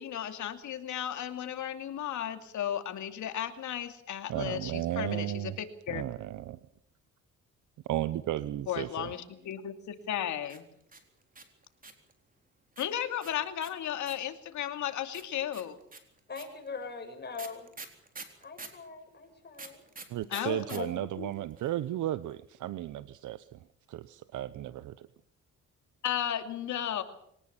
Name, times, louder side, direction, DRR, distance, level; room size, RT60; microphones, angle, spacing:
voice 1, 0.0-6.1 8.7-10.6 12.8-15.8 20.3-20.9 21.2-21.3 26.0-27.0, left 10 dB, 75° left, 7 dB, 2.7 m, -34 dB
voice 2, 4.3-5.6 5.9-6.6 7.9-9.1 20.1-23.6 23.9-25.1, right 13 dB, 75° right, 15 dB, 0.9 m, -34 dB
voice 3, 9.0-9.5 16.3-17.7 18.4-19.8 20.3-21.1, left 4 dB, 35° left, 3 dB, 7.6 m, -43 dB
sound 1, 10.4-12.1 12.8-14.4 15.1-18.8 19.5-20.8 21.1-21.2 21.3-21.8, right 3 dB, 30° right, 4.0 m, -46 dB
23.0 x 19.0 x 7.2 m, 0.70 s
cardioid pair, 90°, 30 cm